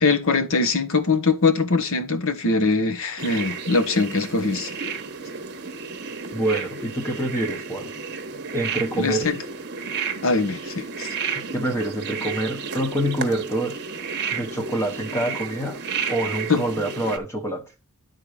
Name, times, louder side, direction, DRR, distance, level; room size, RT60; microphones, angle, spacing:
voice 1, 0.0-4.7 9.0-9.4 10.2-11.1 16.5-16.6, left 3 dB, 65° left, 1.2 m, -22 dB
sound 1, 3.2-17.2, right 5 dB, 50° right, 1.1 m, -32 dB
voice 2, 6.3-7.9 8.5-9.3 11.5-13.8 14.3-17.7, right 1 dB, 10° left, 1.2 m, -26 dB
11.0 x 4.0 x 4.9 m
head